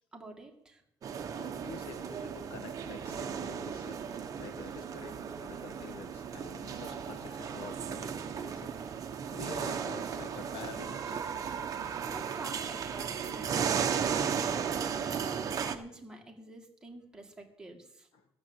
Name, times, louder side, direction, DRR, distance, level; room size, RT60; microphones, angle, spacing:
voice 1, 0.1-0.8 12.0-18.1, right 2 dB, 5° right, 1 dB, 1.8 m, -48 dB
sound 1, 1.0-15.8, right 7 dB, 35° right, 0.9 m, -35 dB
voice 2, 1.3-8.9 9.3-11.2 18.1-18.3, left 4 dB, 60° left, 7 dB, 1.8 m, -47 dB
15.0 x 6.9 x 7.8 m, 0.79 s
cardioid pair, 165°, 10 cm